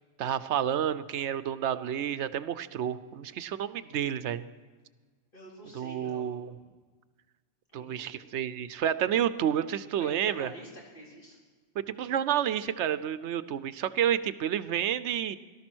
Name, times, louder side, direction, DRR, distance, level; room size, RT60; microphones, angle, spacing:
voice 1, 0.2-4.4 5.7-6.5 7.7-10.5 11.8-15.4, right 9 dB, 80° right, 14 dB, 0.9 m, -30 dB
voice 2, 5.3-6.3 7.8-8.2 10.0-11.4, right 1 dB, 50° left, -4 dB, 4.2 m, -47 dB
18.0 x 12.5 x 6.2 m, 1.4 s
omnidirectional pair, 1.2 m